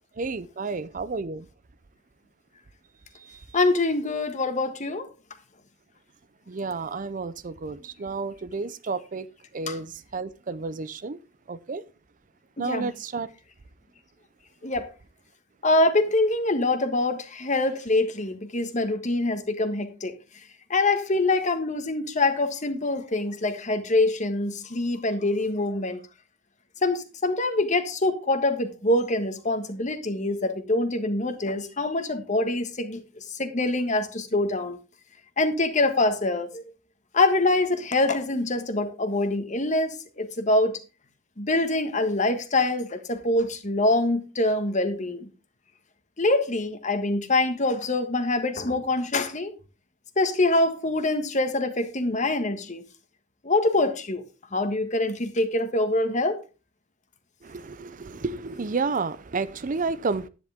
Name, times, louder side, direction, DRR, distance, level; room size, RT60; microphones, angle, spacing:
voice 1, 0.2-1.5 3.2-3.4 6.5-9.3 9.5-11.2 11.5-11.8 12.6-13.3 57.4-60.3, right 4 dB, 45° right, 0.5 m, -31 dB
voice 2, 3.5-5.1 9.7-9.8 12.6-12.9 14.6-14.9 15.6-20.1 20.7-26.0 26.8-33.0 33.4-34.8 35.4-36.6 37.1-40.8 41.4-45.3 46.2-49.5 50.2-52.8 53.4-54.2 54.5-56.4, left 2 dB, 40° left, 1.4 m, -24 dB
10.5 x 10.0 x 3.5 m
head